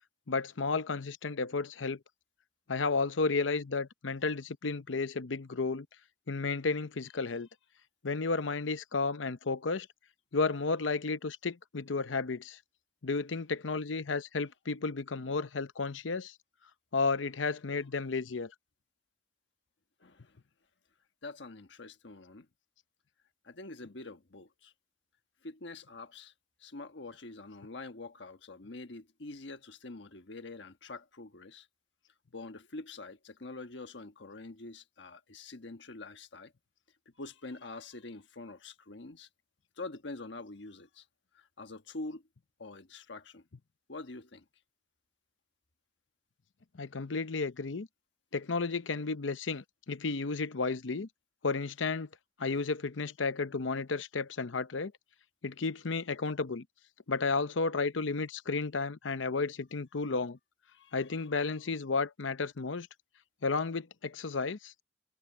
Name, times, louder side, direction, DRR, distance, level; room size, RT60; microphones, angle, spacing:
voice 1, 0.3-2.0 2.7-5.9 6.3-7.5 8.0-9.9 10.3-12.6 13.0-16.3 16.9-18.5 46.7-47.9 48.3-51.1 51.4-52.1 52.4-54.9 55.4-56.6 57.1-60.4 60.9-62.9 63.4-64.7, left 4 dB, 85° left, 0.8 m, -32 dB
voice 2, 20.0-20.4 21.2-22.5 23.4-24.7 25.4-26.3 26.6-31.7 32.3-36.5 37.2-39.3 39.8-41.0 41.3-42.2 42.6-43.4 43.9-44.4 60.7-61.0, left 2 dB, 65° left, 1.4 m, -45 dB
head